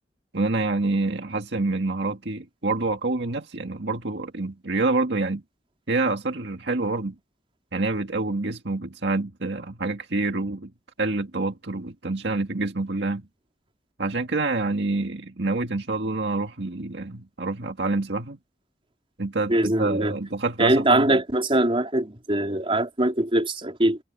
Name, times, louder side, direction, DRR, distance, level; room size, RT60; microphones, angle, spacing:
voice 1, 0.3-5.4 5.9-7.2 7.7-10.7 11.0-13.2 14.0-18.4 19.2-21.2, right 3 dB, 75° right, 1.9 m, -27 dB
voice 2, 19.5-20.2 20.6-24.0, right 1 dB, 30° right, 3.9 m, -22 dB
head